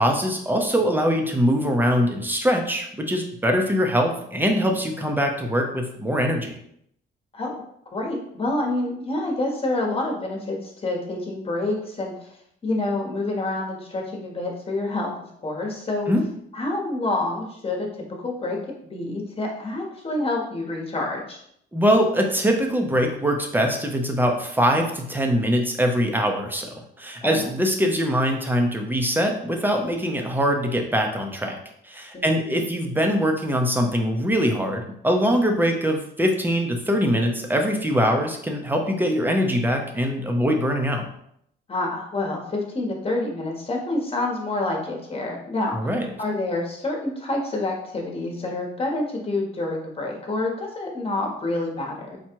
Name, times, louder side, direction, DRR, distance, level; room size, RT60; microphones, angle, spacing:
voice 1, 0.0-6.6 16.1-16.2 21.7-26.7 27.0-31.6 31.9-41.0 45.7-46.1, equal, 10° right, 3 dB, 0.8 m, -22 dB
voice 2, 7.9-12.3 12.6-15.1 15.4-16.1 16.5-17.9 18.2-18.6 18.9-21.4 27.2-27.4 32.1-32.6 41.7-45.9 46.2-52.2, left 2 dB, 30° left, 0 dB, 1.3 m, -27 dB
4.4 x 2.4 x 4.5 m, 0.72 s
cardioid pair, 90°, 20 cm